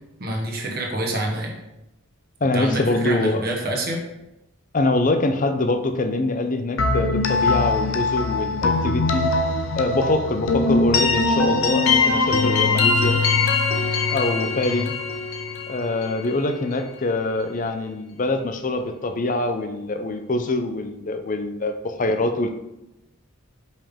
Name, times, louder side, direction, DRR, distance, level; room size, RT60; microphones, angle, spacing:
voice 1, 0.2-1.5 2.5-4.0 14.7-14.9, right 1 dB, 45° right, 0 dB, 1.1 m, -27 dB
voice 2, 2.4-3.4 4.7-9.3 9.8-13.2 14.1-14.9 15.7-22.5, left 2 dB, 40° left, 7 dB, 0.5 m, -24 dB
sound 1, 6.8-16.5, left 3 dB, 80° left, 0.6 m, -22 dB
5.4 x 5.2 x 3.6 m, 0.91 s
head